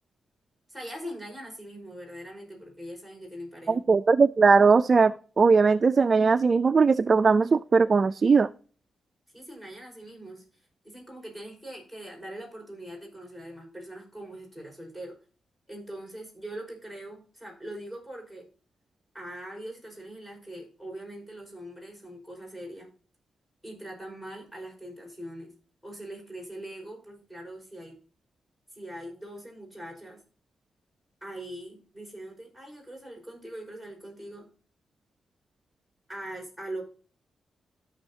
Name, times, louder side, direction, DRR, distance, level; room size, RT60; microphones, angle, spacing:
voice 1, 0.7-3.8 9.3-15.1 15.7-18.5 19.1-22.9 23.6-25.5 25.8-27.9 28.7-30.2 31.2-34.5 36.1-36.8, right 1 dB, 10° left, 0 dB, 4.8 m, -42 dB
voice 2, 3.7-8.5, right 4 dB, 40° right, 11 dB, 0.3 m, -20 dB
14.0 x 6.3 x 2.7 m, 0.41 s
cardioid pair, 95°, 0 cm